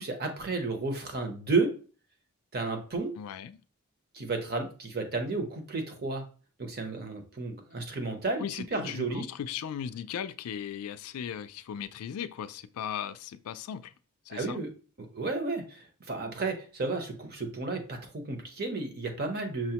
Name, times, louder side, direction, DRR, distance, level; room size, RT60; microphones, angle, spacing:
voice 1, 0.0-1.7 2.5-3.1 4.1-6.2 6.6-8.4 8.7-9.3 14.3-14.7 15.1-19.7, right 3 dB, 45° right, 0.8 m, -32 dB
voice 2, 3.2-3.6 8.4-13.9 14.3-14.6, left 8 dB, 75° left, 0.3 m, -37 dB
6.1 x 2.1 x 2.8 m
head